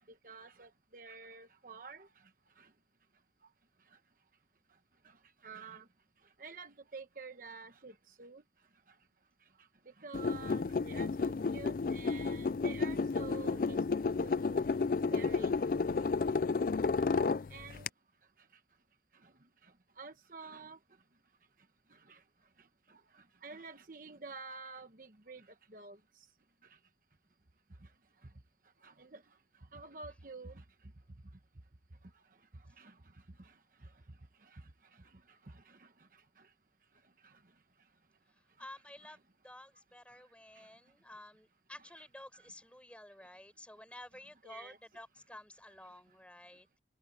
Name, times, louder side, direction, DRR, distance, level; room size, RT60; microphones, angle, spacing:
voice 1, 0.2-2.1 5.4-5.8 6.4-7.9 8.2-8.4 10.0-13.8 14.2-14.6 15.1-15.5 17.5-17.8 20.0-20.8 22.1-22.2 23.4-25.4 25.7-26.0 28.8-29.2 29.7-30.5 32.8-32.9 44.4-44.8, right 4 dB, 50° right, 1.1 m, -48 dB
sound 1, 10.1-17.9, left 4 dB, 50° left, 0.4 m, -32 dB
voice 2, 38.6-46.8, left 1 dB, 5° left, 6.9 m, -52 dB
head